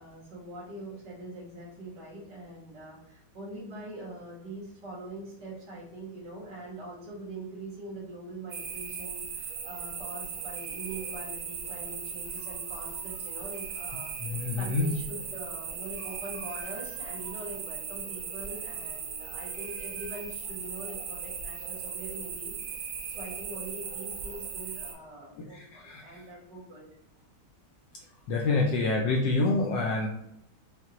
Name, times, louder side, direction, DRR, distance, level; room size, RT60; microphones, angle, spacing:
voice 1, 0.0-22.9 23.1-26.9 28.1-28.3 28.9-29.2, right 2 dB, 55° right, -5 dB, 1.9 m, -43 dB
sound 1, 8.5-24.9, right 6 dB, 70° right, 1.2 m, -38 dB
voice 2, 14.2-14.9 25.5-26.0 28.3-30.1, left 3 dB, 75° left, 0 dB, 1.1 m, -27 dB
5.4 x 2.4 x 2.8 m, 0.80 s
omnidirectional pair, 2.3 m